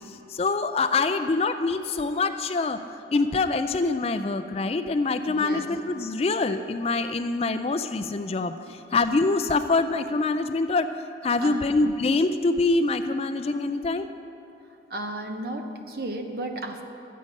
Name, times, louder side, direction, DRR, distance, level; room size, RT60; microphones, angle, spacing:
voice 1, 0.3-2.8 3.1-8.5 8.9-10.9 11.2-14.1, left 3 dB, 35° left, 10 dB, 0.3 m, -25 dB
voice 2, 5.3-5.7 8.7-8.8 11.4-11.8 14.9-16.8, right 1 dB, 55° right, 4 dB, 0.9 m, -34 dB
12.5 x 8.4 x 5.3 m, 2.9 s
head